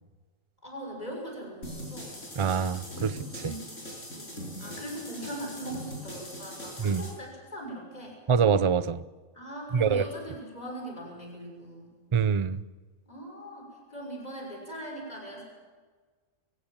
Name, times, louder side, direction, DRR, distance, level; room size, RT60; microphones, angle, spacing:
voice 1, 0.6-2.1 3.4-3.8 4.1-8.2 9.3-12.0 13.1-15.4, right 1 dB, 30° left, 0 dB, 6.6 m, -40 dB
sound 1, 1.6-7.1, equal, 65° left, 7.0 m, -41 dB
voice 2, 2.4-3.4 6.8-7.0 8.3-9.0 9.7-10.0 12.1-12.6, right 6 dB, 40° right, 15 dB, 0.4 m, -25 dB
26.0 x 15.5 x 7.4 m, 1.4 s
omnidirectional pair, 1.4 m